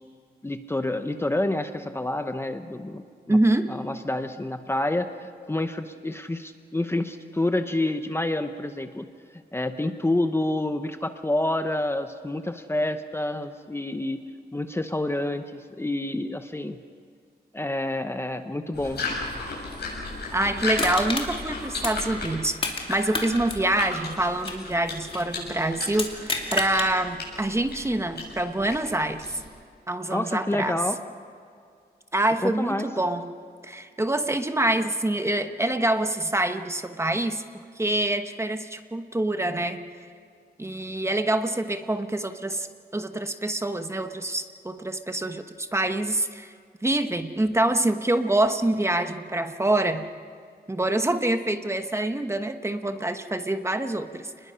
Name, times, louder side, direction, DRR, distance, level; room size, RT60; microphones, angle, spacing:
voice 1, 0.4-3.4 3.7-9.1 9.3-14.2 14.5-16.8 17.5-19.0 30.1-31.0 32.4-32.9, left 1 dB, 15° left, 8 dB, 0.8 m, -28 dB
voice 2, 3.3-3.7 20.3-29.2 29.9-30.8 32.1-33.3 33.6-37.4 37.8-40.0 40.6-42.7 42.9-46.5 46.8-50.1 50.7-54.5, right 1 dB, 15° right, 8 dB, 1.0 m, -26 dB
sound 1, 18.7-29.6, left 3 dB, 75° left, 7.2 m, -35 dB
Crushing, 20.7-22.8 23.1-25.3 25.9-26.9 27.4-27.5, left 3 dB, 30° left, 2.7 m, -30 dB
29.5 x 20.5 x 5.7 m, 2.2 s
wide cardioid pair, 130°, 17 cm